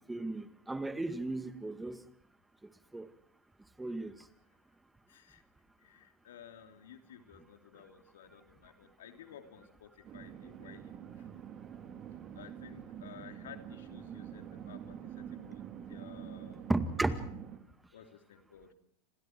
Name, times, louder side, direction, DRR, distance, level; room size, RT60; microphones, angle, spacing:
voice 1, 0.1-2.0 2.9-3.0 3.8-4.1 16.7-17.2, right 2 dB, 10° right, 2.0 m, -34 dB
voice 2, 5.1-5.4 5.8-11.3 12.3-16.7 17.9-18.7, left 9 dB, 80° left, 2.9 m, -54 dB
sound 1, 10.0-17.6, right 9 dB, 40° right, 3.7 m, -46 dB
30.0 x 26.5 x 4.6 m
hypercardioid pair, 100°, 0 cm